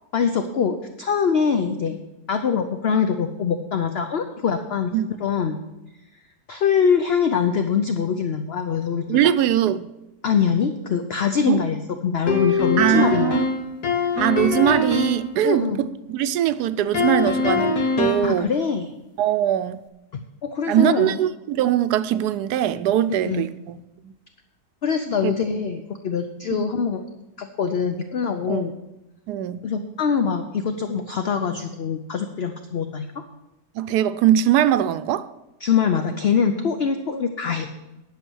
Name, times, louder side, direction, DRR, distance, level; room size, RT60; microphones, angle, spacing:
voice 1, 0.1-2.0 2.3-4.9 5.2-5.6 6.5-9.2 10.2-13.4 15.4-15.8 18.2-18.9 20.4-21.2 23.2-23.5 24.8-27.0 27.4-28.7 29.6-33.1 35.6-37.7, left 6 dB, 55° left, 0.7 m, -23 dB
voice 2, 9.1-9.9 11.5-11.6 12.8-13.5 14.1-18.5 19.2-19.8 20.7-23.8 24.0-24.1 25.2-25.3 26.5-26.6 28.5-28.6 29.3-29.6 33.8-35.3, right 11 dB, 85° right, 1.1 m, -21 dB
sound 1, 12.3-15.3 16.9-18.4, left 3 dB, 75° left, 1.9 m, -22 dB
11.0 x 6.9 x 6.2 m
omnidirectional pair, 1.7 m